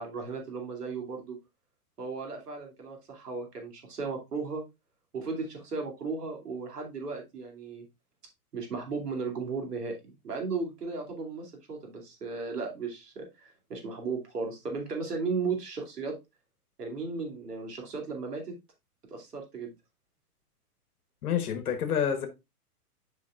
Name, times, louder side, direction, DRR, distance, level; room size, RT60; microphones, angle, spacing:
voice 1, 0.0-1.4 2.0-4.6 5.1-7.8 8.5-10.0 10.2-16.2 16.8-18.5 19.1-19.7, right 4 dB, 85° right, 2.7 m, -35 dB
voice 2, 21.2-22.3, left 8 dB, 70° left, 1.2 m, -28 dB
8.3 x 5.2 x 2.4 m
hypercardioid pair, 130°, 46 cm